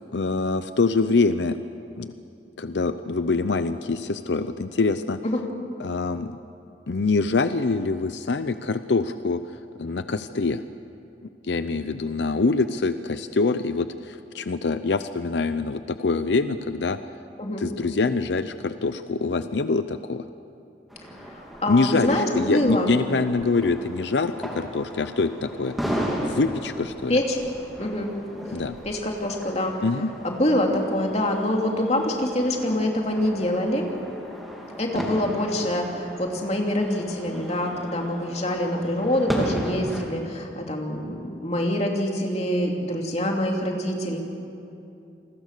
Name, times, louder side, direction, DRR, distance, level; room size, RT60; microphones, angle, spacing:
voice 1, 0.1-1.6 2.0-2.1 2.6-5.2 5.8-6.4 6.9-9.4 9.8-10.6 11.4-17.0 17.6-20.2 21.7-25.9 26.2-27.2 28.5-28.8 29.8-30.1, left 3 dB, 85° left, 11 dB, 0.7 m, -25 dB
sound 1, 20.9-40.0, equal, ahead, 3.0 m, -35 dB
voice 2, 21.2-22.9 27.1-27.4 27.8-28.1 28.8-29.7 30.2-33.9 34.8-44.2, left 1 dB, 35° left, 1 dB, 2.9 m, -25 dB
28.5 x 21.5 x 6.7 m, 2.7 s
head